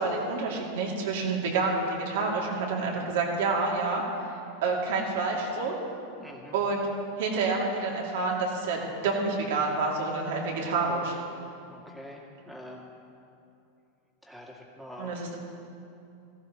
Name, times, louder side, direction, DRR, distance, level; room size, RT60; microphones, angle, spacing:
voice 1, 0.0-4.0 4.6-5.7 6.5-6.9 7.2-11.1 15.0-15.3, right 3 dB, 70° right, -1 dB, 2.5 m, -28 dB
voice 2, 6.2-6.6 11.7-12.9 14.2-15.3, left 1 dB, ahead, -2 dB, 2.2 m, -45 dB
16.5 x 14.5 x 3.0 m, 2.6 s
hypercardioid pair, 105°, 0 cm